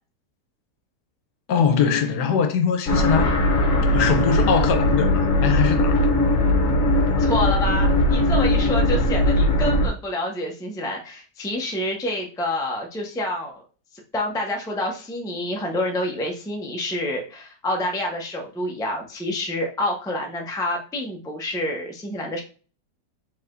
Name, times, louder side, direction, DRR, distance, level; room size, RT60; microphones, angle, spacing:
voice 1, 1.5-3.4 3.9-6.0, left 6 dB, 75° left, 1.3 m, -22 dB
sound 1, 2.9-9.9, left 1 dB, 55° left, 1.2 m, -19 dB
voice 2, 7.2-13.6 14.1-22.4, left 1 dB, 5° left, 0.5 m, -28 dB
4.7 x 4.0 x 2.6 m
omnidirectional pair, 1.8 m